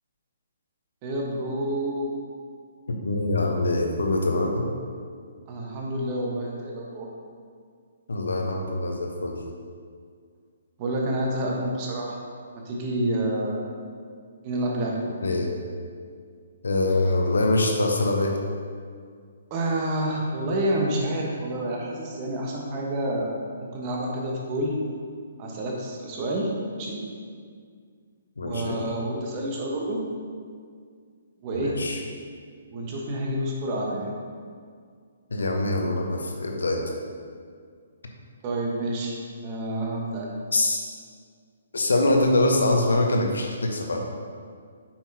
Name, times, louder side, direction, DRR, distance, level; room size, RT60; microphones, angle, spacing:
voice 1, 1.0-2.1 5.5-7.1 10.8-12.2 12.5-13.7 14.4-15.0 19.5-23.4 23.7-24.8 25.4-27.0 28.4-30.0 31.4-31.8 32.7-34.1 38.4-39.2 39.4-40.4, right 1 dB, 30° right, -1 dB, 1.2 m, -28 dB
voice 2, 2.9-4.7 8.1-9.4 15.2-15.5 16.6-18.3 28.4-28.8 31.5-32.0 35.3-36.8 40.5-40.8 41.7-44.0, left 2 dB, 70° left, 2 dB, 1.0 m, -24 dB
8.7 x 5.7 x 2.9 m, 2.1 s
figure-of-eight pair, 130°, 0 cm